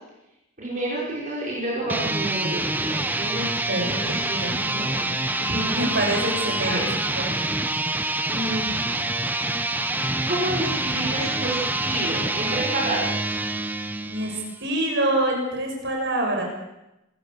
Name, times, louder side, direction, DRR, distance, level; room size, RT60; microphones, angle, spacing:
voice 1, 0.6-5.1 5.4-5.7 6.6-6.8 8.3-8.8 10.3-13.3, right 1 dB, 40° right, -5 dB, 5.6 m, -30 dB
sound 1, 1.8-14.6, right 2 dB, 10° right, 0.9 m, -26 dB
voice 2, 3.7-4.7 5.7-6.8 7.4-7.5 14.0-16.4, right 1 dB, 55° right, 1 dB, 6.8 m, -26 dB
26.5 x 15.0 x 7.0 m, 0.94 s
head